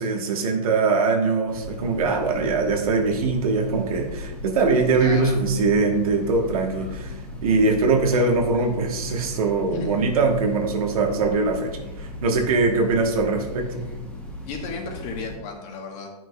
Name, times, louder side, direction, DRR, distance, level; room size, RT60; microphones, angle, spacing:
voice 1, 0.0-7.2 7.4-13.8, right 3 dB, 60° right, 3 dB, 1.3 m, -22 dB
Train, 1.5-15.4, left 1 dB, 5° left, 1.2 m, -37 dB
voice 2, 4.9-5.4 9.7-10.0 14.4-16.2, left 4 dB, 35° left, 2 dB, 1.3 m, -34 dB
9.3 x 6.0 x 2.3 m, 1.0 s
hypercardioid pair, 120°, 20 cm